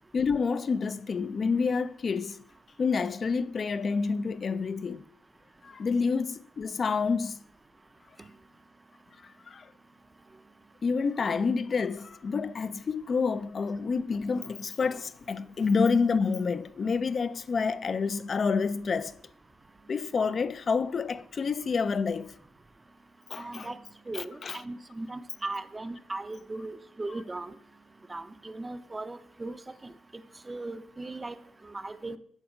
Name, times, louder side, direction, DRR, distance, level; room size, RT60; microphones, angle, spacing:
voice 1, 0.1-2.4 2.8-5.1 5.6-7.4 9.5-9.7 10.8-19.1 19.9-22.3 23.3-23.7 24.1-24.6, left 5 dB, 40° left, 0.3 m, -28 dB
voice 2, 23.4-23.8 24.1-27.5 28.1-29.6 29.8-29.9 30.5-31.4 31.6-32.2, right 2 dB, 20° right, 0.5 m, -38 dB
7.9 x 3.6 x 4.9 m
cardioid pair, 90°, 0 cm